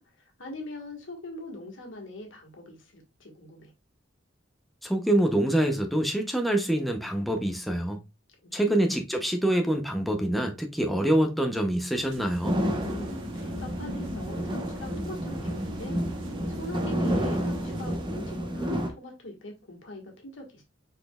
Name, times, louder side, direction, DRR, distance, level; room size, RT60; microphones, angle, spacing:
voice 1, 0.0-3.7 8.4-8.8 12.8-20.6, left 2 dB, 75° left, 1.6 m, -42 dB
voice 2, 4.8-8.0 8.5-12.6, right 1 dB, ahead, 0.6 m, -25 dB
sound 1, 11.9-18.0, right 2 dB, 80° right, 0.8 m, -44 dB
sound 2, 12.4-18.9, equal, 25° right, 0.8 m, -30 dB
5.6 x 4.1 x 2.2 m
head